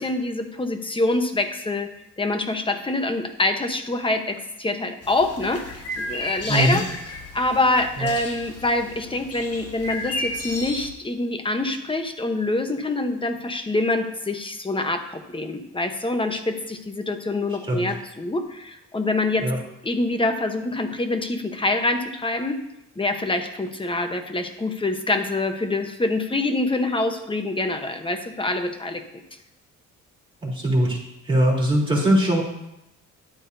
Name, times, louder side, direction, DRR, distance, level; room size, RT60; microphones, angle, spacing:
voice 1, 0.0-1.9 2.2-6.8 7.3-19.5 19.8-22.6 23.0-29.0, left 2 dB, 15° left, 7 dB, 1.1 m, -25 dB
sound 1, 5.0-10.9, left 2 dB, 55° left, 1.7 m, -34 dB
voice 2, 6.5-6.8 8.0-8.1 17.7-17.9 19.4-19.6 30.4-31.0 31.2-32.4, right 1 dB, 15° right, -4 dB, 3.5 m, -21 dB
11.5 x 8.4 x 2.7 m, 0.88 s
cardioid pair, 90°, 30 cm